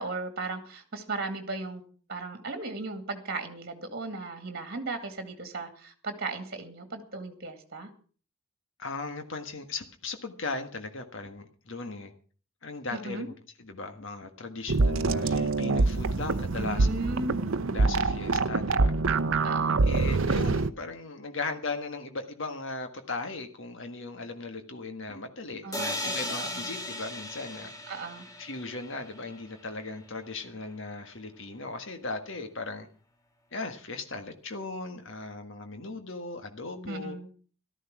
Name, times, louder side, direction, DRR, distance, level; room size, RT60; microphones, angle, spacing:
voice 1, 0.0-1.8 2.1-7.9 12.9-13.3 16.6-17.4 19.4-19.8 25.6-26.7 27.9-28.2 36.9-37.3, right 3 dB, 45° right, 8 dB, 2.2 m, -36 dB
voice 2, 8.8-12.1 12.6-13.3 13.6-16.9 17.7-18.9 19.8-27.7 28.4-32.9 33.5-37.2, left 3 dB, 55° left, 7 dB, 1.6 m, -37 dB
sound 1, 14.7-20.7, right 3 dB, 65° right, 0.7 m, -25 dB
sound 2, 25.7-29.5, left 1 dB, 15° left, 1.6 m, -37 dB
14.0 x 13.0 x 6.0 m, 0.42 s
head